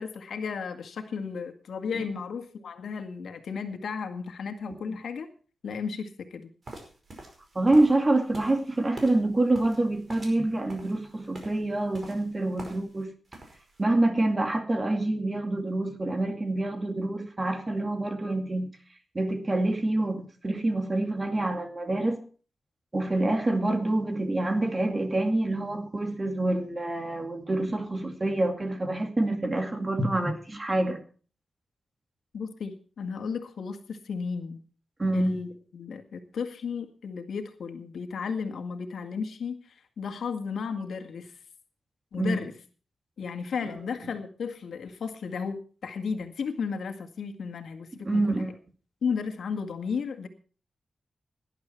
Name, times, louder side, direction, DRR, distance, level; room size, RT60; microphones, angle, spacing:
voice 1, 0.0-5.3 5.6-6.5 32.3-34.6 35.1-41.3 42.1-42.5 43.2-48.4 49.0-50.3, left 5 dB, 85° left, 1.9 m, -34 dB
sound 1, 6.6-13.0 13.3-13.8, right 2 dB, 40° right, 5.1 m, -46 dB
voice 2, 7.5-13.1 13.8-18.7 19.1-22.2 22.9-31.0 35.0-35.4 42.1-42.4 48.1-48.5, right 2 dB, 25° right, 2.4 m, -26 dB
18.5 x 11.0 x 4.5 m
wide cardioid pair, 125°, 0 cm